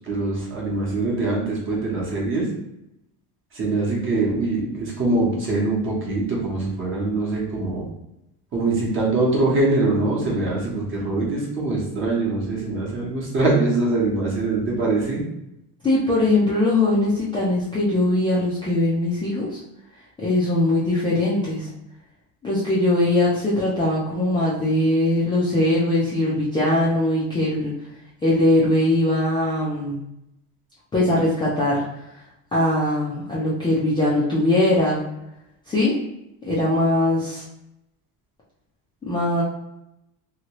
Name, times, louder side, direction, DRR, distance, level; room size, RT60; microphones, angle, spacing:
voice 1, 0.1-2.5 3.5-7.9 8.5-15.2, right 2 dB, 30° right, -4 dB, 1.0 m, -23 dB
voice 2, 15.8-19.6 20.2-21.7 22.4-27.7 28.2-30.0 30.9-31.8 32.5-35.0 35.7-35.9 36.5-37.4 39.0-39.4, left 1 dB, 10° left, -8 dB, 0.4 m, -21 dB
2.9 x 2.7 x 2.9 m, 0.85 s
cardioid pair, 155°, 42 cm